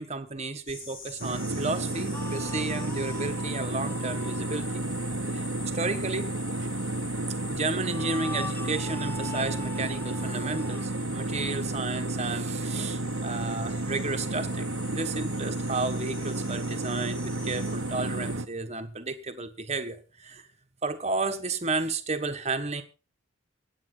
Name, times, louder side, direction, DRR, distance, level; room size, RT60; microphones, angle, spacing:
voice 1, 0.0-4.8 5.3-5.5 5.7-6.3 7.5-20.5 20.8-22.8, right 3 dB, 35° right, 8 dB, 1.5 m, -32 dB
sound 1, 0.7-18.4, left 3 dB, 75° left, 7.0 m, -44 dB
sound 2, 1.2-18.5, right 2 dB, 85° right, 1.2 m, -32 dB
sound 3, 2.1-4.9 7.8-10.9, left 2 dB, 10° left, 0.9 m, -42 dB
24.0 x 8.9 x 4.0 m, 0.32 s
head